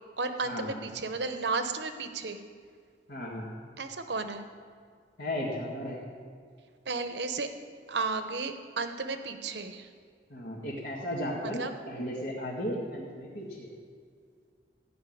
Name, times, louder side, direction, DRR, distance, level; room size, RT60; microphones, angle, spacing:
voice 1, 0.2-2.4 3.8-4.4 6.9-7.5 7.9-9.9 11.6-11.7, right 4 dB, 70° right, 8 dB, 0.9 m, -33 dB
voice 2, 3.1-3.5 5.2-6.1 10.3-13.7, equal, 70° left, -7 dB, 2.1 m, -35 dB
15.0 x 5.7 x 9.3 m, 2.1 s
head